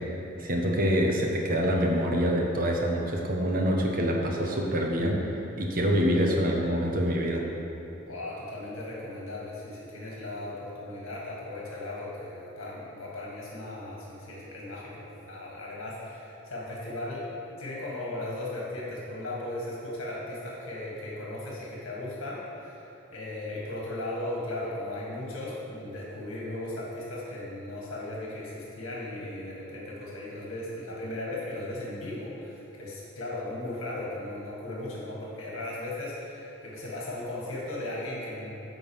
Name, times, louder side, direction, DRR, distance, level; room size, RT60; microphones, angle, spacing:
voice 1, 0.0-7.4, equal, 45° right, 0 dB, 1.1 m, -26 dB
voice 2, 8.0-38.5, left 1 dB, 90° left, -5 dB, 1.8 m, -37 dB
10.0 x 3.9 x 7.2 m, 2.9 s
head